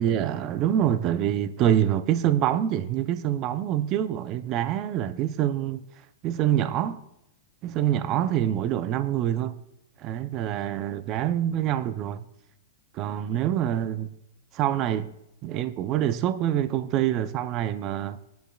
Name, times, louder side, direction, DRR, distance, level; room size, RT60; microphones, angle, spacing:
voice 1, 0.0-5.8 6.2-7.0 7.6-9.6 10.0-12.2 12.9-14.1 14.5-15.1 15.4-18.2, right 11 dB, 30° right, 0.5 m, -26 dB
18.5 x 10.5 x 2.3 m
hypercardioid pair, 155°, 0 cm